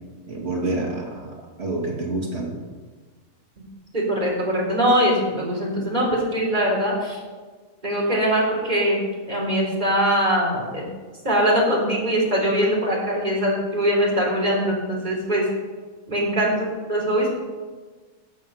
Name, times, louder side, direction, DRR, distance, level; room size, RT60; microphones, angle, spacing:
voice 1, 0.3-1.3 1.6-2.6, right 2 dB, 50° right, -2 dB, 2.8 m, -27 dB
voice 2, 3.9-7.2 7.8-9.0 9.3-10.9 11.2-15.4 16.1-17.4, equal, 30° right, -3 dB, 3.9 m, -22 dB
13.0 x 8.6 x 5.5 m, 1.4 s
omnidirectional pair, 1.4 m